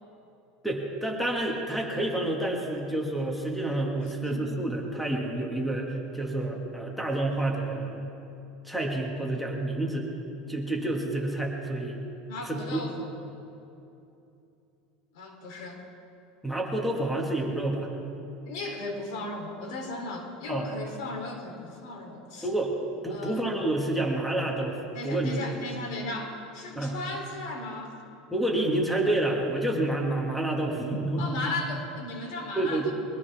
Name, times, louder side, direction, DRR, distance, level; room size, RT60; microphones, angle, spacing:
voice 1, 0.6-8.1 8.6-10.1 10.5-12.0 12.5-12.8 16.4-17.9 20.5-20.7 22.4-25.3 26.8-27.0 28.3-31.5 32.6-32.9, right 1 dB, ahead, 0 dB, 1.8 m, -29 dB
voice 2, 12.3-13.1 15.1-15.8 18.5-22.5 23.1-23.5 24.9-28.0 31.2-32.9, left 2 dB, 75° left, 2 dB, 3.3 m, -36 dB
23.0 x 17.0 x 3.6 m, 2.8 s
supercardioid pair, 145°, 3 cm